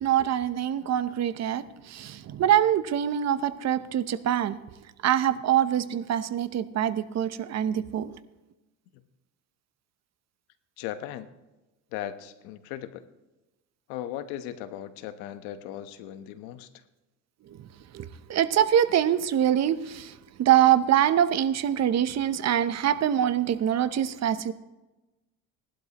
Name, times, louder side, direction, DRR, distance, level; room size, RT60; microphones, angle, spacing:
voice 1, 0.0-4.6 5.0-8.2 17.9-20.1 20.4-24.5, right 10 dB, 40° right, 13 dB, 0.8 m, -24 dB
voice 2, 10.8-11.3 11.9-13.1 13.9-16.7, left 11 dB, 85° left, 11 dB, 1.2 m, -37 dB
18.5 x 12.0 x 3.0 m, 1.1 s
supercardioid pair, 105°, 39 cm